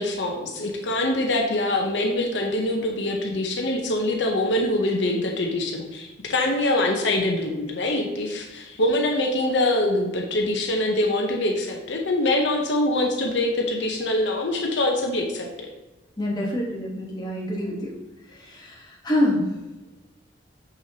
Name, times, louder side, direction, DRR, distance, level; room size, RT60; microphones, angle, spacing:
voice 1, 0.0-15.7, left 1 dB, 70° left, 2 dB, 0.8 m, -24 dB
voice 2, 16.2-17.9 18.4-19.5, left 1 dB, 20° left, -3 dB, 1.3 m, -26 dB
6.3 x 6.0 x 2.9 m, 1.1 s
head